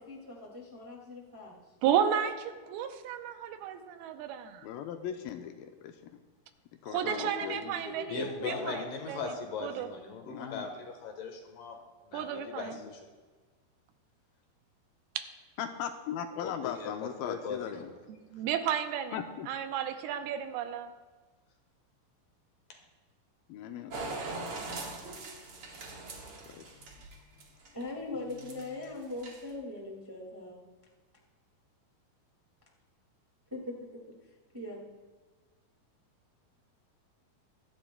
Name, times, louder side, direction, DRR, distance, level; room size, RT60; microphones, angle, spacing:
voice 1, 0.0-1.5 7.0-8.8 27.7-30.6 33.5-34.0 34.5-34.8, left 2 dB, 25° right, -2 dB, 0.5 m, -41 dB
voice 2, 1.8-4.7 6.9-8.8 9.1-9.2 9.6-9.9 12.1-12.8 15.2-15.3 18.3-19.2 19.5-20.9, right 9 dB, 80° right, 7 dB, 2.6 m, -32 dB
voice 3, 4.6-6.2 6.8-8.0 10.2-10.7 12.7-12.9 15.6-17.9 19.1-19.5 23.5-24.3 26.5-27.0, left 9 dB, 80° left, 6 dB, 2.3 m, -39 dB
voice 4, 8.1-11.8 12.1-13.1 16.4-17.9, left 4 dB, 65° left, 4 dB, 2.7 m, -39 dB
sound 1, 23.9-27.8 28.3-28.8 29.1-29.5, right 3 dB, 50° right, 1.7 m, -41 dB
24.0 x 10.5 x 2.2 m, 1.3 s
omnidirectional pair, 4.4 m